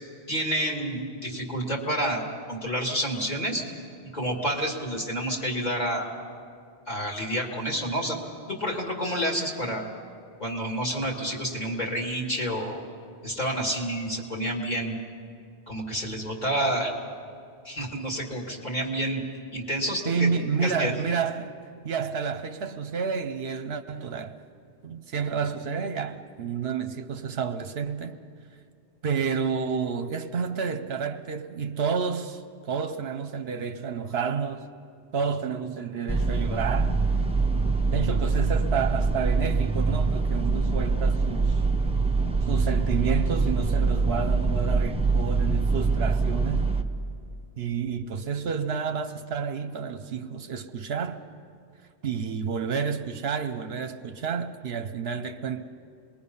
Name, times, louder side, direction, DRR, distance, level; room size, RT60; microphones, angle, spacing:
voice 1, 0.3-3.6 4.1-6.1 6.9-8.2 8.5-9.9 10.4-12.8 13.2-15.0 15.7-16.9 17.6-19.2 19.5-20.3 20.6-20.9, equal, 40° left, 2.6 m, -29 dB
voice 2, 20.0-21.6 21.8-24.4 24.8-28.2 29.0-32.4 32.7-34.7 35.1-37.0 37.9-41.6 42.4-46.7 47.6-51.2 52.0-55.6, right 6 dB, 65° right, 1.0 m, -30 dB
sound 1, 36.1-46.8, right 4 dB, 5° right, 0.7 m, -24 dB
27.5 x 21.5 x 5.5 m
omnidirectional pair, 1.1 m